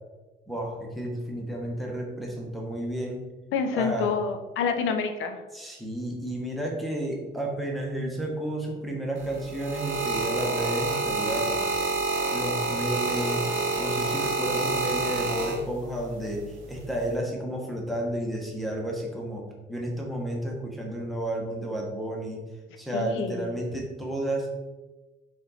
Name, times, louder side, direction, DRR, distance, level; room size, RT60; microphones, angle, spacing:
voice 1, 0.5-3.2 3.7-4.1 5.5-11.6 12.3-13.5 13.8-22.4 22.8-24.5, right 1 dB, ahead, -2 dB, 1.0 m, -31 dB
voice 2, 3.5-5.4 22.9-23.5, left 5 dB, 85° left, 7 dB, 0.6 m, -28 dB
sound 1, 9.2-16.0 16.8-17.1, right 3 dB, 85° right, 0.8 m, -28 dB
4.4 x 2.6 x 4.1 m, 1.2 s
cardioid pair, 90°, 20 cm